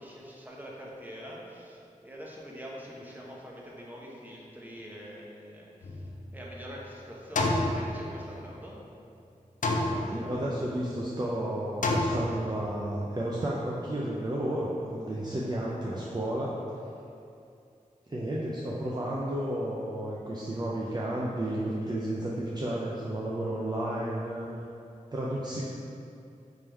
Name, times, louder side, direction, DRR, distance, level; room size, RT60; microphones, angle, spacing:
voice 1, 0.0-8.8, equal, 10° right, -4 dB, 0.9 m, -45 dB
sound 1, 5.8-6.7 7.4-8.6 9.6-10.6 11.8-12.8, left 2 dB, 65° left, 0.5 m, -29 dB
voice 2, 9.9-16.5 18.1-24.5 25.1-25.6, right 1 dB, 30° right, -6 dB, 0.5 m, -32 dB
3.6 x 3.2 x 4.5 m, 2.6 s
cardioid pair, 45°, 14 cm